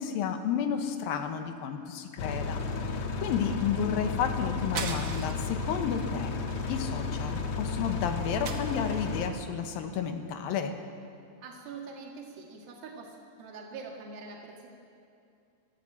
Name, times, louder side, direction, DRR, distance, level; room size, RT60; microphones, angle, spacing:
voice 1, 0.0-2.6 3.2-6.3 6.7-10.7, left 7 dB, 75° left, 6 dB, 2.9 m, -31 dB
sound 1, 2.2-9.3, left 4 dB, 60° left, 2.4 m, -33 dB
sound 2, 4.7-5.5 5.9-6.1 6.5-7.4 8.4-9.2, right 5 dB, 60° right, 1.3 m, -39 dB
voice 2, 11.4-14.7, right 4 dB, 80° right, -1 dB, 3.9 m, -44 dB
23.5 x 14.0 x 8.6 m, 2.5 s
omnidirectional pair, 4.3 m